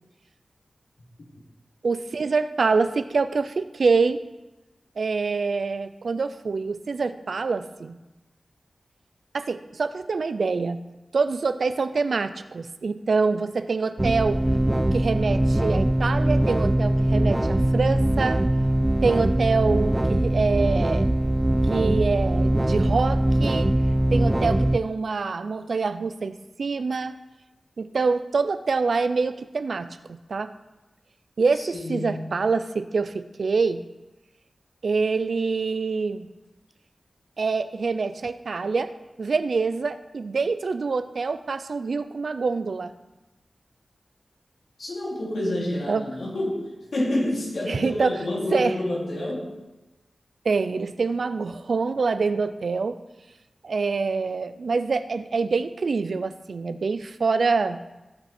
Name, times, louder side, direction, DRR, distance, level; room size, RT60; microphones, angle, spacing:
voice 1, 1.8-4.2 5.0-8.0 9.3-10.8 11.1-14.4 14.9-18.4 19.0-21.1 21.7-23.7 24.1-27.2 27.8-30.5 31.4-33.8 34.8-36.3 37.4-38.9 39.2-42.9 45.9-46.0 47.7-48.2 48.5-48.8 50.4-53.0 53.6-57.8, right 4 dB, 80° right, 12 dB, 0.5 m, -25 dB
sound 1, 14.0-24.8, right 1 dB, 20° right, 0.3 m, -22 dB
voice 2, 31.5-32.4 44.8-49.5, left 1 dB, 85° left, -3 dB, 2.8 m, -28 dB
16.0 x 5.7 x 4.4 m, 1.1 s
wide cardioid pair, 100°, 0 cm